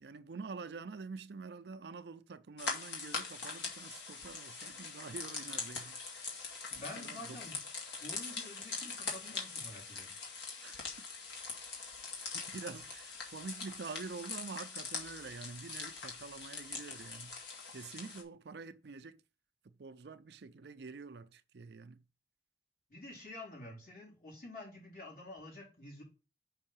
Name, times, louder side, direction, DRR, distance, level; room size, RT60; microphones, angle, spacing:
voice 1, 0.0-6.0 6.7-7.5 10.6-10.8 12.5-17.4 17.7-19.2 19.6-22.0, right 4 dB, 70° right, 0.5 m, -47 dB
sound 1, 2.6-18.2, left 4 dB, 85° left, 2.1 m, -42 dB
voice 2, 6.8-7.6 8.0-10.2 22.9-26.0, left 2 dB, 50° left, 4.0 m, -48 dB
5.7 x 5.3 x 5.6 m
head